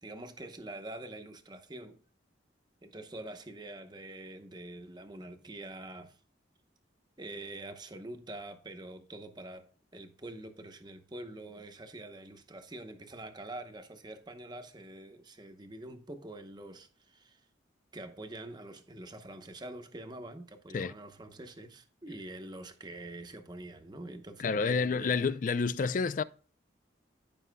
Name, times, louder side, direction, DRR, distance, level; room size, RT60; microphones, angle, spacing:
voice 1, 0.0-2.0 2.8-6.2 7.2-17.4 17.9-25.3, right 2 dB, 20° right, 0.8 m, -45 dB
voice 2, 24.4-26.2, left 5 dB, 40° left, 0.3 m, -29 dB
14.5 x 5.5 x 2.2 m
head